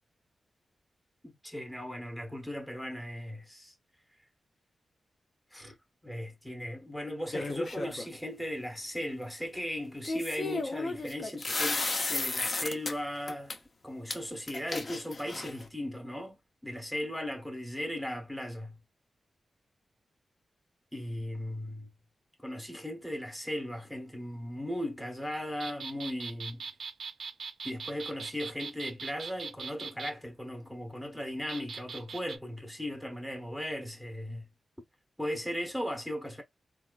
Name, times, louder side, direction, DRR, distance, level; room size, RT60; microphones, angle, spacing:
voice 1, 1.2-3.7 5.5-5.8 6.0-13.6 13.8-18.8 20.9-21.9 22.4-26.7 27.6-34.5 35.2-36.4, equal, ahead, 0.8 m, -37 dB
sound 1, 7.3-8.1 10.0-12.9 13.3-13.6 14.1-14.2 14.5-15.7, left 3 dB, 35° left, 0.5 m, -33 dB
sound 2, 25.6-30.1 31.5-32.4, right 5 dB, 65° right, 0.5 m, -41 dB
4.2 x 2.2 x 2.3 m
wide cardioid pair, 165°, 0 cm